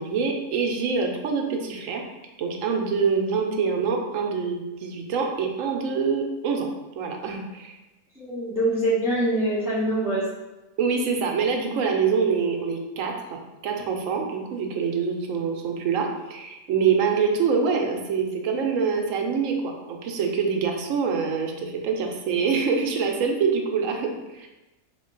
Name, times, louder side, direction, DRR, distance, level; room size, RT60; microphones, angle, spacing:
voice 1, 0.0-2.0 2.4-6.7 7.0-7.8 10.8-24.5, right 5 dB, 75° right, 3 dB, 0.9 m, -25 dB
voice 2, 8.1-10.3, right 1 dB, 5° right, -9 dB, 0.4 m, -24 dB
3.6 x 2.2 x 3.7 m, 1.0 s
omnidirectional pair, 1.4 m